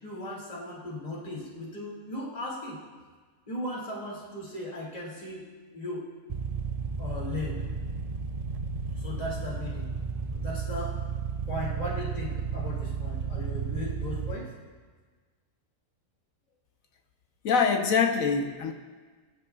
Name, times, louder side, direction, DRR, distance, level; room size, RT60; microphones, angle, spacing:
voice 1, 0.0-2.8 3.5-5.4 5.7-6.0 7.0-7.7 9.0-9.9 10.3-11.0 11.5-14.5, left 1 dB, 30° left, -5 dB, 2.5 m, -37 dB
sound 1, 6.3-14.4, right 5 dB, 50° right, 0.4 m, -33 dB
voice 2, 17.4-18.7, left 5 dB, 75° left, 5 dB, 1.4 m, -24 dB
21.5 x 11.5 x 2.4 m, 1.4 s
omnidirectional pair, 1.4 m